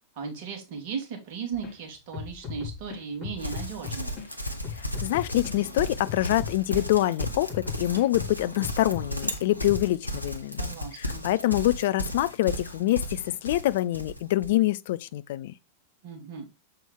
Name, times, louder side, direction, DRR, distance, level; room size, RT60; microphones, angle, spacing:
voice 1, 0.2-4.2 10.6-11.3 16.0-16.5, right 6 dB, 45° right, 2.2 m, -36 dB
sound 1, 1.5-1.8 2.1-4.3 4.6-6.8 7.2-9.3 9.7-9.9, left 7 dB, 30° left, 3.8 m, -39 dB
Livestock farm animals working animals, 3.4-14.6, left 1 dB, 90° left, 0.8 m, -35 dB
voice 2, 5.0-10.6 11.0-15.5, left 15 dB, 55° left, 0.3 m, -25 dB
6.9 x 4.4 x 3.7 m
figure-of-eight pair, 90°, 0 cm